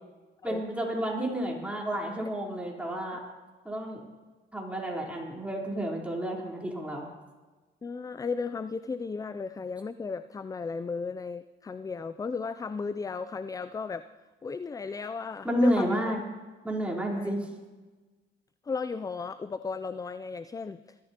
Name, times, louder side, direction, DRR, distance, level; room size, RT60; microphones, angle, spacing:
voice 1, 0.4-3.2 3.6-4.0 4.5-7.1 15.4-16.2 16.6-17.5, equal, 5° right, -3 dB, 3.9 m, -30 dB
voice 2, 7.8-14.1 14.4-16.1 17.1-17.3 18.6-21.0, left 4 dB, 20° left, 13 dB, 0.3 m, -35 dB
21.5 x 13.0 x 2.9 m, 1.3 s
cardioid pair, 90°, 20 cm